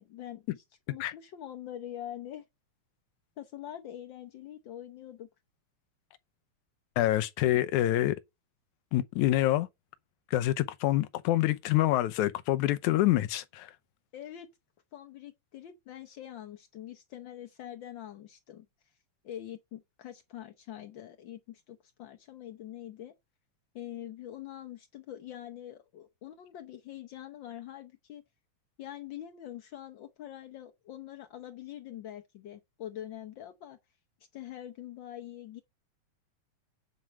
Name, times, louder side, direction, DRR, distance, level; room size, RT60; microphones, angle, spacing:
voice 1, 0.0-2.4 3.4-5.3 14.1-14.5 14.9-18.7 19.2-23.1 23.7-28.2 28.8-33.8 34.3-35.6, left 11 dB, 75° left, 1.1 m, -44 dB
voice 2, 7.0-8.2 8.9-9.7 10.3-13.7, left 15 dB, 90° left, 2.2 m, -26 dB
9.6 x 4.6 x 7.5 m
omnidirectional pair, 3.3 m